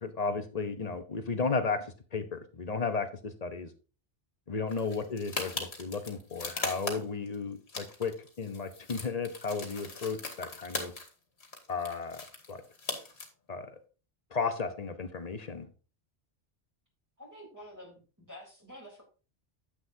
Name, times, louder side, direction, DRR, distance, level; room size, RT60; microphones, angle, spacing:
voice 1, 0.0-3.7 4.5-8.1 8.4-10.9 11.7-12.6 13.5-13.7 14.3-15.7, left 4 dB, 40° left, 9 dB, 0.9 m, -34 dB
sound 1, 4.7-7.3 7.7-11.1 11.4-13.2, left 3 dB, 65° left, 1.9 m, -39 dB
voice 2, 17.2-19.0, equal, 15° right, -2 dB, 3.5 m, -49 dB
9.5 x 8.0 x 2.7 m, 0.36 s
omnidirectional pair, 1.2 m